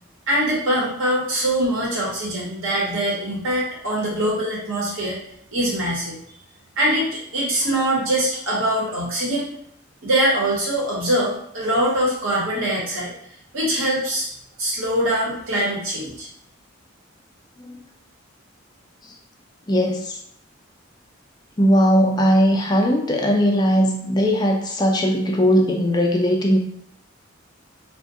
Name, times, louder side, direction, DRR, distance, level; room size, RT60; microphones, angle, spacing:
voice 1, 0.3-5.2 5.5-6.2 6.8-7.1 7.3-9.5 10.0-13.1 13.5-14.3 14.6-16.3, right 1 dB, 85° right, -5 dB, 1.2 m, -23 dB
voice 2, 19.7-20.2 21.6-26.6, equal, 20° left, 1 dB, 0.4 m, -18 dB
2.5 x 2.2 x 3.6 m, 0.69 s
head